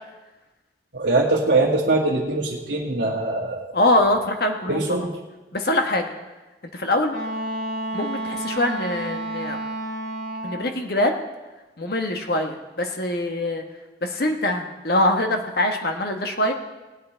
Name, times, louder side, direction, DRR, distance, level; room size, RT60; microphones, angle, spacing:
voice 1, 0.9-3.7 4.7-5.1, right 2 dB, 60° right, -7 dB, 1.5 m, -22 dB
voice 2, 3.7-5.0 5.5-6.1 6.7-7.1 7.9-9.6 10.4-11.1 11.8-13.6 14.0-16.5, left 1 dB, 55° left, 4 dB, 1.2 m, -23 dB
Wind instrument woodwind instrument, 7.1-10.8, right 1 dB, 80° left, 1.7 m, -30 dB
19.5 x 8.5 x 4.4 m, 1.1 s
head